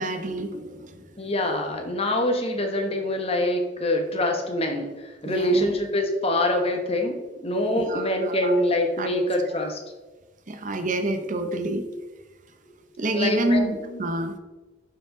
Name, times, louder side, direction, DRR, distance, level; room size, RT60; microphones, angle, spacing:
voice 1, 0.0-1.0 5.2-5.7 7.7-8.6 9.0-9.1 10.5-11.8 13.0-14.3, right 1 dB, 40° right, 7 dB, 0.8 m, -27 dB
voice 2, 1.2-9.8 13.1-14.0, left 1 dB, 30° left, 3 dB, 1.2 m, -25 dB
11.5 x 5.1 x 3.8 m, 1.2 s
head